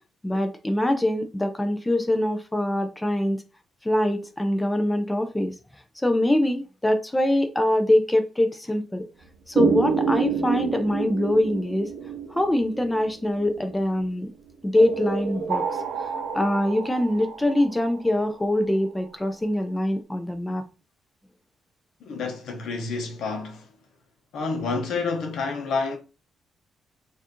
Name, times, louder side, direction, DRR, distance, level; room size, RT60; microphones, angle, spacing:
voice 1, 0.2-3.4 3.8-5.5 6.0-9.1 9.5-11.9 12.3-14.3 14.6-15.7 16.3-20.6, left 1 dB, 5° left, 0.4 m, -23 dB
sound 1, 9.6-13.8 14.8-18.6, right 5 dB, 80° right, 0.6 m, -28 dB
voice 2, 22.0-23.7 24.3-26.0, left 4 dB, 60° left, 0.7 m, -29 dB
4.4 x 2.4 x 2.9 m
cardioid pair, 180°, 0 cm